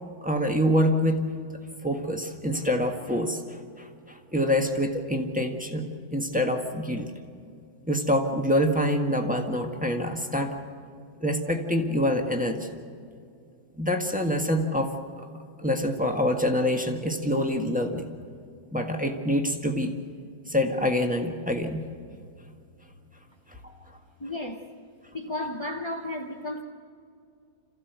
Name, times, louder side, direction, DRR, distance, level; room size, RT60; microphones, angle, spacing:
voice 1, 0.2-1.2 1.8-7.1 7.9-10.5 11.2-12.7 13.8-15.3 15.6-18.1 18.7-20.0 20.5-21.8, equal, 5° right, 3 dB, 1.4 m, -26 dB
voice 2, 24.2-24.6 25.1-26.6, left 1 dB, 30° left, 2 dB, 0.5 m, -33 dB
27.0 x 15.0 x 8.1 m, 2.4 s
omnidirectional pair, 2.1 m